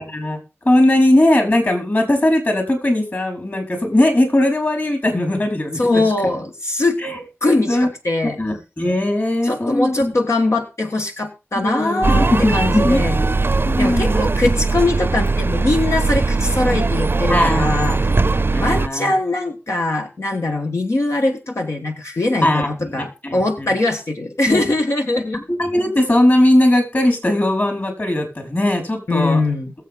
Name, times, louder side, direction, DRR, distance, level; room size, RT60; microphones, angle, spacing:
voice 1, 0.1-0.4 0.6-6.0 7.0-7.2 7.7-7.9 8.2-10.1 11.6-13.4 13.6-14.2 16.7-16.8 17.3-17.7 18.5-19.1 22.4-23.7 24.5-24.6 25.3-29.5, left 1 dB, 45° left, 4 dB, 4.7 m, -19 dB
voice 2, 5.7-7.0 7.4-8.4 9.4-13.2 13.8-18.1 18.6-25.4 29.1-29.7, left 2 dB, 80° left, 2 dB, 1.4 m, -21 dB
sound 1, 12.0-18.9, right 3 dB, 50° right, 0.6 m, -19 dB
21.0 x 7.5 x 3.7 m, 0.29 s
wide cardioid pair, 65°, 5 cm